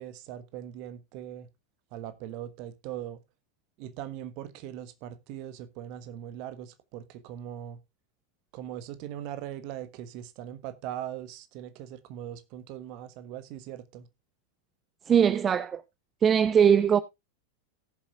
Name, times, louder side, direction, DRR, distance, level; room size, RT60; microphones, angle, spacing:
voice 1, 0.0-1.5 1.9-3.2 3.8-7.8 8.5-14.1, right 11 dB, 45° right, 1.3 m, -40 dB
voice 2, 15.1-15.8 16.2-17.0, right 8 dB, 25° right, 0.5 m, -21 dB
18.0 x 7.3 x 2.4 m
figure-of-eight pair, 90°, 0 cm